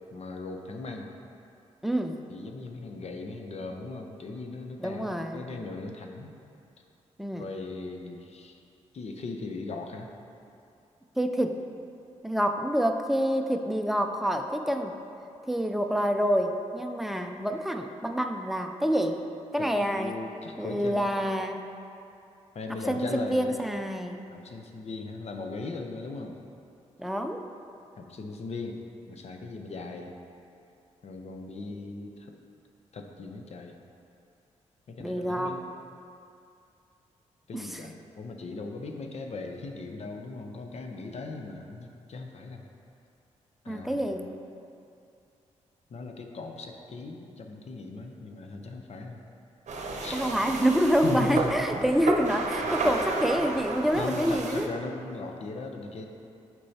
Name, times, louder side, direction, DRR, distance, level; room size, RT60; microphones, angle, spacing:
voice 1, 0.1-1.1 2.3-6.3 7.3-8.6 8.9-10.1 19.6-21.1 22.5-23.6 24.3-26.4 28.0-28.8 29.1-30.1 31.0-32.3 32.9-33.8 34.9-35.6 37.5-42.6 43.6-44.2 45.9-49.2 50.0-50.3 51.0-51.5 54.0-56.1, left 3 dB, 55° left, 3 dB, 0.6 m, -38 dB
voice 2, 1.8-2.2 4.8-5.4 7.2-7.5 11.2-11.6 12.2-14.9 15.5-19.2 19.5-20.2 20.6-21.6 22.9-24.3 27.0-27.4 31.7-31.8 35.0-35.6 37.5-37.8 43.7-44.3 50.1-54.7, equal, ahead, 5 dB, 0.4 m, -27 dB
sound 1, 49.7-54.7, right 3 dB, 65° right, 0.7 m, -32 dB
8.3 x 4.6 x 2.8 m, 2.6 s
cardioid pair, 60°, 13 cm